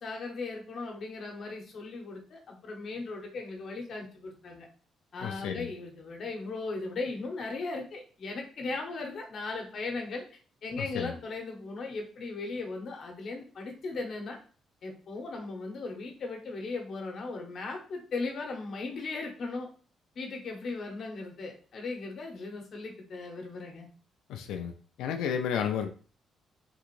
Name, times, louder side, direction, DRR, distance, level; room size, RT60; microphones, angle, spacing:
voice 1, 0.0-4.7 5.1-10.2 10.6-14.4 14.8-19.7 20.1-23.9, left 3 dB, 60° left, 2 dB, 0.9 m, -37 dB
voice 2, 5.2-5.7 10.8-11.1 24.3-24.7 25.0-25.9, left 8 dB, 90° left, 5 dB, 0.3 m, -32 dB
3.6 x 2.9 x 2.5 m, 0.40 s
cardioid pair, 90°, 0 cm